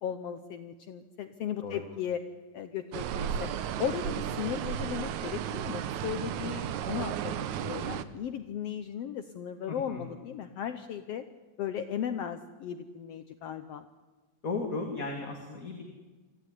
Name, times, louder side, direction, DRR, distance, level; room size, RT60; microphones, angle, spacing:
voice 1, 0.0-2.2 2.5-3.5 3.8-11.2 11.6-13.8, left 9 dB, 70° left, 10 dB, 1.6 m, -36 dB
sound 1, 2.9-8.0, right 9 dB, 75° right, 2.3 m, -34 dB
voice 2, 9.7-10.0 14.4-15.9, left 3 dB, 30° left, 2 dB, 2.4 m, -35 dB
25.0 x 15.0 x 9.9 m, 1.3 s
omnidirectional pair, 3.5 m